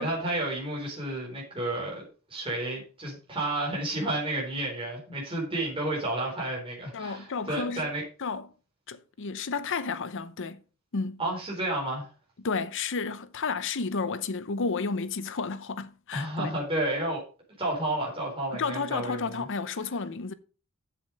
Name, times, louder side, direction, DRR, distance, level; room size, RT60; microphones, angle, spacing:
voice 1, 0.0-8.0 11.2-12.1 16.1-17.2 17.6-19.5, right 1 dB, 25° right, 4.2 m, -31 dB
voice 2, 6.9-7.9 8.2-8.5 8.9-10.6 10.9-11.2 12.4-16.5 18.5-20.3, left 4 dB, 60° left, 0.7 m, -32 dB
8.1 x 7.5 x 5.1 m
head